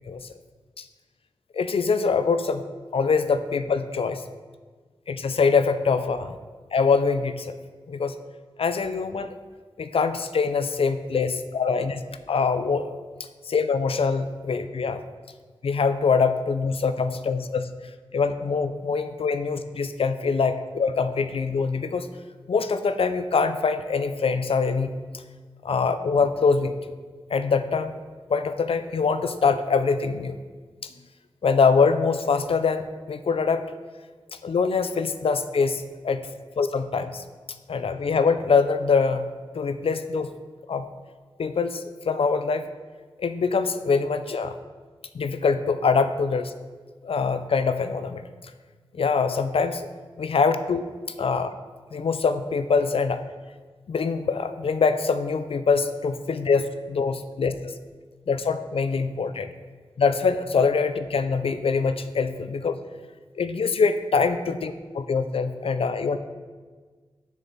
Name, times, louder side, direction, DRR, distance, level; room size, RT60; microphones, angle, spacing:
voice 1, 1.5-2.6 2.9-4.2 5.1-6.4 6.7-7.6 7.9-8.1 8.6-9.3 9.8-12.0 12.3-13.0 13.5-15.0 15.6-17.7 18.1-22.1 22.5-24.9 25.6-26.8 27.3-27.9 28.3-30.4 31.4-33.6 34.3-36.3 36.6-37.2 37.7-40.3 40.7-40.8 41.4-42.7 43.2-44.5 45.1-46.5 47.0-48.2 48.9-49.9 50.2-50.8 51.2-51.5 51.9-53.2 53.9-57.7 58.3-59.5 60.0-62.7 63.4-66.2, left 5 dB, 75° left, 10 dB, 0.4 m, -24 dB
6.7 x 6.4 x 4.0 m, 1.4 s
wide cardioid pair, 70°, 10 cm